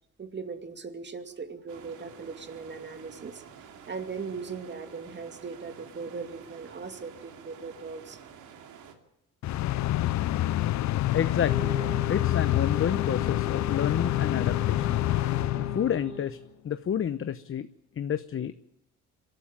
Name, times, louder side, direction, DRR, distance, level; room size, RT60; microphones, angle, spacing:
voice 1, 0.2-3.5 3.9-8.2, right 5 dB, 35° right, 7 dB, 2.5 m, -39 dB
sound 1, 1.7-8.9, right 7 dB, 85° right, 2.7 m, -49 dB
sound 2, 9.4-16.2, left 14 dB, 70° left, 0.7 m, -27 dB
voice 2, 11.1-11.8 12.1-15.0 15.6-16.4 16.6-17.7 18.0-18.6, left 9 dB, 45° left, 12 dB, 0.9 m, -30 dB
sound 3, 11.4-16.3, left 5 dB, 10° right, 4.5 m, -38 dB
24.0 x 13.0 x 9.0 m, 0.84 s
cardioid pair, 90°, 30 cm